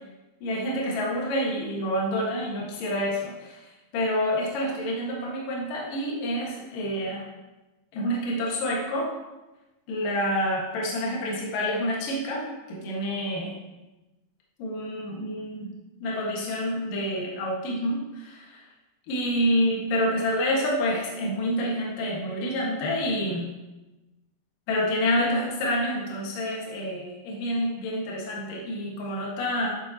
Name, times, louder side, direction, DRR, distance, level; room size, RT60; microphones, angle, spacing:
voice 1, 0.4-3.6 3.9-7.2 7.9-9.1 9.9-13.5 14.6-15.7 16.0-18.6 19.1-23.4 24.7-29.7, equal, 60° left, -3 dB, 2.9 m, -28 dB
11.0 x 7.5 x 2.9 m, 1.1 s
omnidirectional pair, 5.1 m